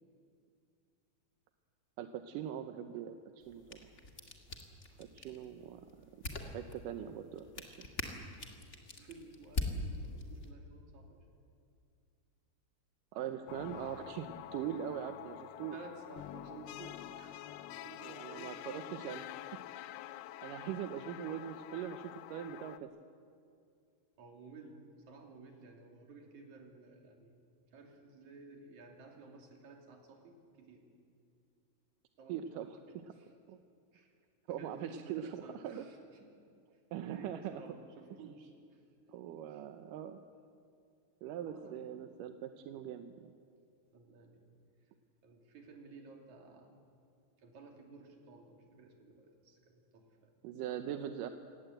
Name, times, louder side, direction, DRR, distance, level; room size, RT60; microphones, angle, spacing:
voice 1, 2.0-3.9 5.0-6.1 6.4-7.9 13.2-15.7 18.0-19.3 20.4-22.9 32.3-32.8 33.5-33.6 34.5-35.8 36.9-37.5 39.1-40.2 41.2-43.3 50.4-51.3, right 10 dB, 75° right, 8 dB, 2.1 m, -42 dB
sound 1, 3.4-10.5, left 2 dB, 35° left, 1.2 m, -43 dB
voice 2, 4.9-5.4 9.0-11.3 13.1-13.5 13.8-13.9 15.7-19.3 24.2-27.4 27.7-30.9 32.2-33.3 33.9-34.1 34.6-36.3 37.1-38.8 39.3-39.7 41.5-41.9 43.9-44.5 45.2-46.7 47.4-50.4, right 3 dB, 50° right, 2 dB, 3.9 m, -55 dB
sound 2, 13.5-22.8, left 13 dB, 85° left, 2.7 m, -47 dB
28.5 x 18.0 x 8.0 m, 2.4 s
omnidirectional pair, 4.5 m